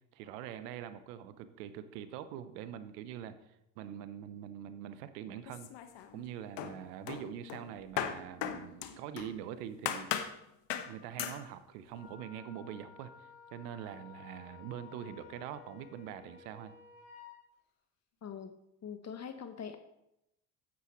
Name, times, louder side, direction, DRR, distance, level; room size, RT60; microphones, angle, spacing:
voice 1, 0.1-3.3 3.8-5.7 6.1-10.2 10.9-16.7, right 10 dB, 85° right, 12 dB, 0.8 m, -44 dB
sound 1, 5.5-6.2 6.6-9.4 9.9-10.4 10.7-10.9 11.2-11.4, left 9 dB, 65° left, 1.0 m, -37 dB
Wind instrument woodwind instrument, 11.9-17.4, left 8 dB, 90° left, 1.6 m, -54 dB
voice 2, 18.2-18.5 18.8-19.8, left 7 dB, 35° left, 8 dB, 0.8 m, -43 dB
9.4 x 8.7 x 3.0 m, 0.84 s
supercardioid pair, 75°, 46 cm